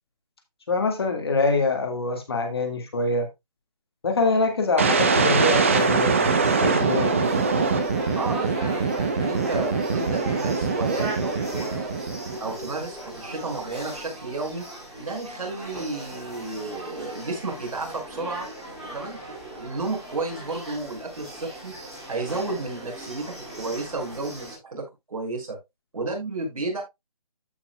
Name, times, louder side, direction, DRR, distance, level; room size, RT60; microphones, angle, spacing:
voice 1, 0.7-3.3 4.0-7.3, left 3 dB, 40° left, 2.0 m, -24 dB
sound 1, 4.8-12.6, right 4 dB, 20° right, 0.8 m, -23 dB
sound 2, 5.4-24.5, right 1 dB, ahead, 2.7 m, -38 dB
voice 2, 8.1-12.0 12.4-14.7 15.0-18.5 18.9-21.7 22.1-25.6 25.9-26.8, right 3 dB, 60° right, 5.8 m, -32 dB
14.0 x 6.0 x 2.3 m
hypercardioid pair, 175°, 20 cm